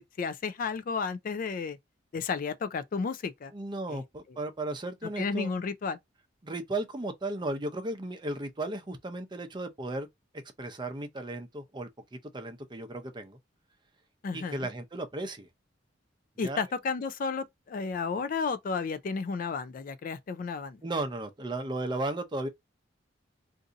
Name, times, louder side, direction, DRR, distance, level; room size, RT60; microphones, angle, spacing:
voice 1, 0.0-1.8 2.1-3.5 3.9-4.0 4.3-4.4 5.2-6.0 14.2-14.7 16.4-20.8, left 5 dB, 45° left, 0.3 m, -32 dB
voice 2, 3.5-5.5 6.4-10.1 10.6-13.4 14.3-15.5 16.4-16.6 20.8-22.5, right 2 dB, 25° right, 0.6 m, -35 dB
2.6 x 2.5 x 3.8 m
head